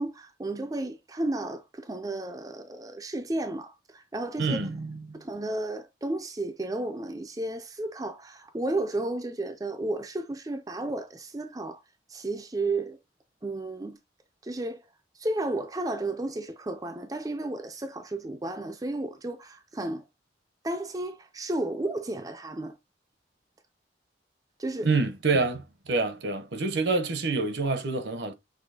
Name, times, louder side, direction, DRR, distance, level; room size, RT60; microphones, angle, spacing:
voice 1, 0.0-4.6 5.1-11.8 12.1-13.0 13.4-14.0 14.4-14.8 15.2-20.0 20.6-22.8 24.6-24.9, right 2 dB, 20° right, 0.4 m, -33 dB
voice 2, 4.4-5.2 24.8-28.3, right 3 dB, 70° right, 0.8 m, -27 dB
6.1 x 2.7 x 2.7 m
head